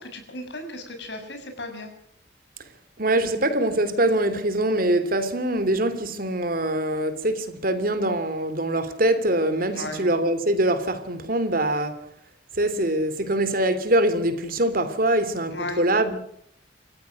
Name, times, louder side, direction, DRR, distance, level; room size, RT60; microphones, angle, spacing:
voice 1, 0.0-1.9 9.7-10.0 15.5-15.8, left 1 dB, 70° left, 6.7 m, -35 dB
voice 2, 3.0-12.1 12.6-16.2, right 1 dB, 50° right, 3.0 m, -23 dB
28.0 x 15.5 x 6.4 m
head